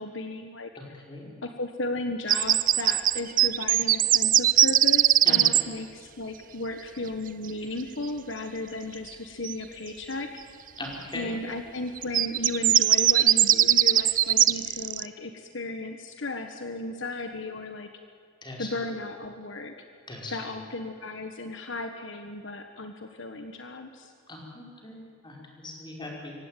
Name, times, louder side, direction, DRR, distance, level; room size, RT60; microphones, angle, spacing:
voice 1, 0.0-0.7 1.4-10.4 11.1-17.9 18.6-19.7 20.3-24.1, left 2 dB, 65° left, 6 dB, 1.4 m, -35 dB
voice 2, 0.8-1.3 5.3-5.4 10.8-11.4 18.4-18.7 20.1-20.4 24.3-26.3, left 2 dB, 25° left, -1 dB, 5.2 m, -39 dB
sound 1, 2.3-5.6 9.4-9.5 12.0-15.1, right 12 dB, 45° right, 0.6 m, -20 dB
25.5 x 16.5 x 9.2 m, 2.4 s
head